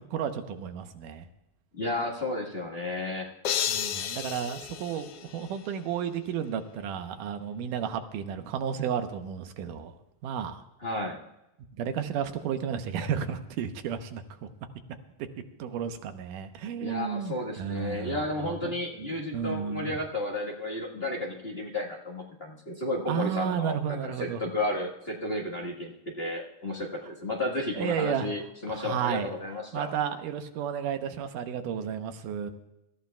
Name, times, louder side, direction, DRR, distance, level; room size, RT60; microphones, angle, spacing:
voice 1, 0.1-1.3 3.7-9.9 10.2-10.6 11.8-14.5 15.6-18.1 18.4-18.7 19.0-20.0 23.1-24.4 27.8-28.3 28.7-29.3 29.7-32.5, right 8 dB, 85° right, 7 dB, 2.5 m, -32 dB
voice 2, 1.8-3.3 10.8-11.2 16.8-29.9, left 1 dB, 40° left, -2 dB, 0.8 m, -33 dB
sound 1, 3.4-5.8, left 9 dB, 75° left, 1.3 m, -32 dB
25.0 x 14.0 x 2.3 m, 0.89 s
omnidirectional pair, 3.7 m